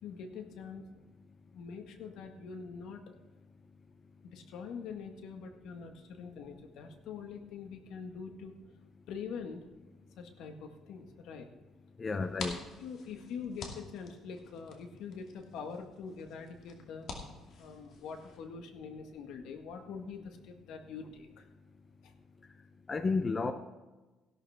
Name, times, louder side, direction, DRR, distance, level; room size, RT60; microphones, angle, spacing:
voice 1, 0.0-0.9 1.5-3.1 4.2-8.6 9.1-9.7 10.2-11.5 12.8-17.1 17.6-21.5 22.0-22.1, left 5 dB, 80° left, 5 dB, 1.7 m, -44 dB
voice 2, 12.0-12.6 22.9-23.5, left 4 dB, 30° left, 9 dB, 0.7 m, -31 dB
sound 1, 12.1-18.4, left 4 dB, 60° left, 2.4 m, -48 dB
16.5 x 12.0 x 3.6 m, 1.2 s
cardioid pair, 115°, 0 cm